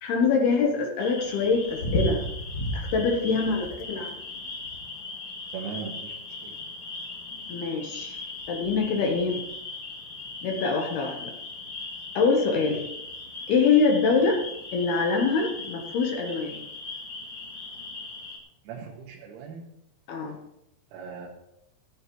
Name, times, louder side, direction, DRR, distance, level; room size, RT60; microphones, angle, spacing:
voice 1, 0.0-2.2 2.7-4.1 7.5-8.2 8.5-9.4 10.4-11.3 12.2-12.8 13.5-14.4 14.7-16.6 20.1-20.4, left 4 dB, 70° left, 2 dB, 2.5 m, -24 dB
sound 1, 1.0-18.4, left 1 dB, 40° left, 2.4 m, -36 dB
voice 2, 5.5-6.1 6.4-6.5 12.5-12.7 18.7-19.6 20.9-21.3, right 6 dB, 85° right, -4 dB, 4.4 m, -38 dB
15.0 x 15.0 x 3.2 m, 0.81 s
omnidirectional pair, 6.0 m